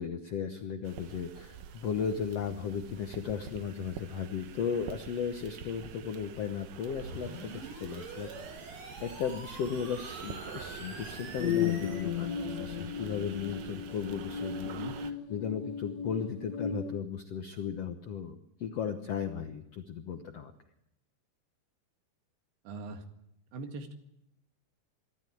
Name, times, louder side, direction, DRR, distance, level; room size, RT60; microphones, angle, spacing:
voice 1, 0.0-14.8 15.3-20.5, left 7 dB, 75° left, 6 dB, 1.4 m, -36 dB
sound 1, 0.8-15.1, right 9 dB, 70° right, 2.4 m, -47 dB
sound 2, 7.0-12.0, right 2 dB, 40° right, 9.1 m, -45 dB
sound 3, 11.4-16.9, left 8 dB, 55° left, 2.3 m, -35 dB
voice 2, 14.6-15.0 22.7-23.0 23.5-24.0, right 3 dB, 85° right, 6 dB, 3.9 m, -41 dB
24.5 x 13.0 x 9.2 m, 0.82 s
omnidirectional pair, 4.5 m